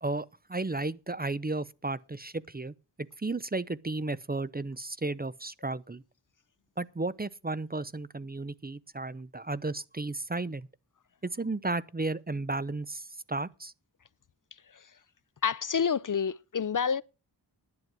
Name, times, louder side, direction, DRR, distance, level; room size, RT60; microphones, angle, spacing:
voice 1, 0.0-2.7 3.2-6.0 6.8-10.7 11.2-13.7, right 2 dB, 20° right, 0.6 m, -34 dB
voice 2, 15.4-17.0, left 6 dB, 45° left, 0.5 m, -28 dB
11.0 x 9.0 x 6.1 m
wide cardioid pair, 65°, 43 cm